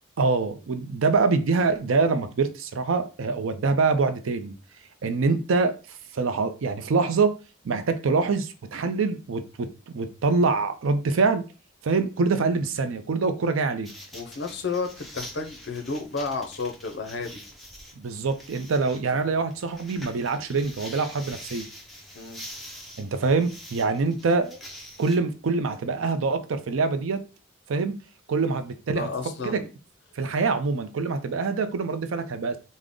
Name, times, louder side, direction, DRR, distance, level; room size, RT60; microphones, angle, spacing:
voice 1, 0.2-4.5 5.0-5.7 6.1-7.4 7.6-11.4 11.8-13.9 18.0-21.7 23.0-24.6 25.0-27.2 27.7-28.0 28.3-29.1 29.4-29.6 30.2-32.6, right 4 dB, 75° right, 9 dB, 0.4 m, -25 dB
sound 1, 13.8-25.2, equal, ahead, 0.6 m, -45 dB
voice 2, 14.1-17.4 22.1-22.4 28.9-29.7, left 4 dB, 55° left, 4 dB, 0.5 m, -32 dB
3.6 x 2.1 x 3.6 m, 0.33 s
head